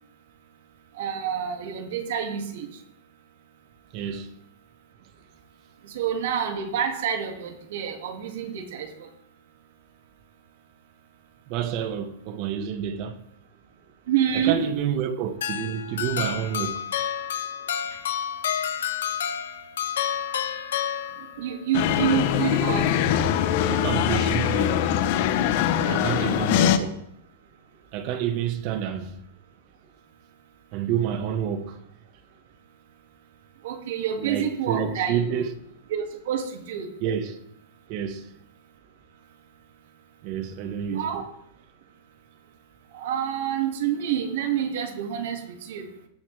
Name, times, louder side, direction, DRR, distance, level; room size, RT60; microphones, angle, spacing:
voice 1, 1.0-2.7 5.9-9.1 14.1-14.6 21.4-22.9 26.1-26.6 33.6-35.5 35.9-36.9 40.9-41.3 42.9-45.9, right 9 dB, 65° right, 2.4 m, -28 dB
voice 2, 3.9-4.3 11.5-13.2 14.3-16.9 17.9-18.0 23.7-24.8 25.9-27.1 27.9-29.2 30.7-31.8 34.2-35.5 37.0-37.4 37.9-38.3 40.2-41.2, right 9 dB, 45° right, 1.5 m, -29 dB
sound 1, 15.4-21.6, left 9 dB, 85° left, 1.3 m, -29 dB
sound 2, 21.7-26.8, left 10 dB, 55° left, 0.9 m, -22 dB
19.0 x 7.3 x 3.5 m
supercardioid pair, 145°, 0 cm